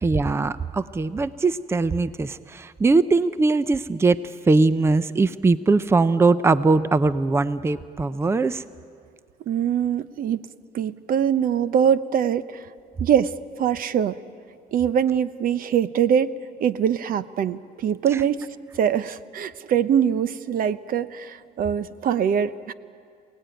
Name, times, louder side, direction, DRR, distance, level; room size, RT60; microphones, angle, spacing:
voice 1, 0.0-8.6 18.1-18.2, right 3 dB, 15° right, 14 dB, 0.5 m, -21 dB
voice 2, 9.5-10.5 10.7-12.7 13.0-14.2 14.7-18.5 18.7-22.7, right 8 dB, 55° right, 15 dB, 0.8 m, -23 dB
27.5 x 18.5 x 9.1 m, 2.3 s
cardioid pair, 110°, 17 cm